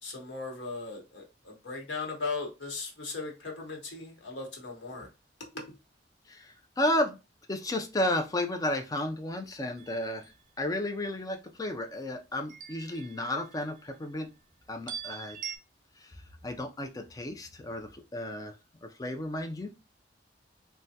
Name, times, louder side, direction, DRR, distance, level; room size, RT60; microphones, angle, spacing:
voice 1, 0.0-5.1 5.4-5.8, left 3 dB, 85° left, 1.0 m, -38 dB
voice 2, 6.3-7.2 7.5-10.3 10.6-14.3 14.7-15.4 16.0-18.5 18.8-19.8, left 1 dB, 20° left, 0.4 m, -33 dB
sound 1, 9.8-10.3 12.5-13.9 14.9-15.6, right 8 dB, 45° right, 0.3 m, -42 dB
3.3 x 2.2 x 2.7 m
head